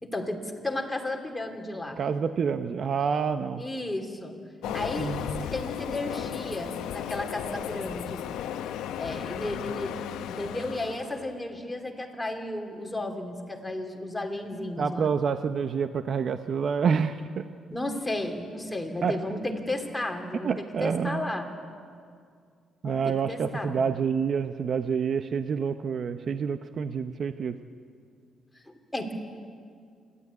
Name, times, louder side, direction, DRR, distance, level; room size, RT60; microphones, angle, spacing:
voice 1, 0.0-2.0 3.6-4.4 4.7-8.2 9.0-15.1 17.7-21.5 22.8-23.8 28.7-29.1, left 1 dB, 10° left, 3 dB, 3.0 m, -34 dB
voice 2, 2.0-3.6 4.7-5.5 14.8-17.5 19.0-19.2 20.4-21.3 22.8-27.6, right 6 dB, 55° right, 9 dB, 0.7 m, -28 dB
Train, 4.6-11.3, left 10 dB, 90° left, 0.8 m, -35 dB
28.5 x 12.5 x 9.6 m, 2.2 s
cardioid pair, 90°, 0 cm